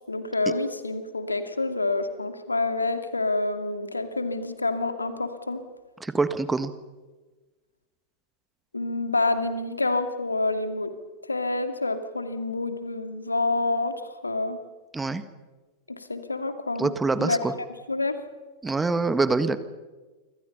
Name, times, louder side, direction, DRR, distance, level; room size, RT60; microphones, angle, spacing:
voice 1, 0.1-5.6 8.7-10.9 11.3-14.6 15.9-16.9 17.2-17.4 17.9-18.2, left 2 dB, 80° left, 8 dB, 2.4 m, -27 dB
voice 2, 6.0-6.7 14.9-15.2 16.8-17.5 18.6-19.6, right 3 dB, 10° right, 12 dB, 1.7 m, -25 dB
29.5 x 25.5 x 5.6 m, 1.2 s
figure-of-eight pair, 90°, 0 cm